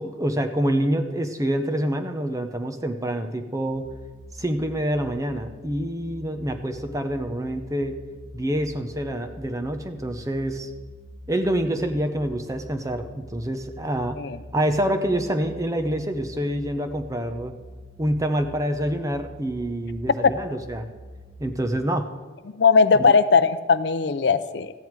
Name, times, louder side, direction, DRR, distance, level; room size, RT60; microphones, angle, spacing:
voice 1, 0.0-3.9 4.4-8.0 8.3-10.7 11.3-14.2 14.5-17.5 18.0-20.8 21.4-22.1 22.9-23.0, right 1 dB, 15° right, 7 dB, 0.7 m, -26 dB
sound 1, 3.9-21.6, equal, 90° right, 2.5 m, -45 dB
voice 2, 22.5-24.7, left 5 dB, 60° left, 12 dB, 0.5 m, -19 dB
14.0 x 9.3 x 4.6 m, 1.4 s
head